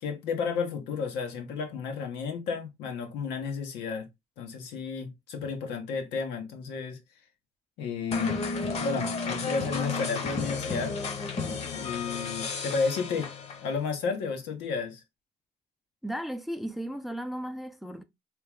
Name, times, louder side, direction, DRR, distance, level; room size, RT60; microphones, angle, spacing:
voice 1, 0.0-4.1 4.4-7.0 7.8-8.4 8.8-11.0 11.2-13.3 13.6-15.0, left 5 dB, 90° left, 1.2 m, -32 dB
sound 1, 8.1-13.8, left 4 dB, 40° left, 1.0 m, -32 dB
voice 2, 16.0-18.0, equal, ahead, 0.4 m, -35 dB
3.3 x 3.1 x 3.5 m
cardioid pair, 110°, 17 cm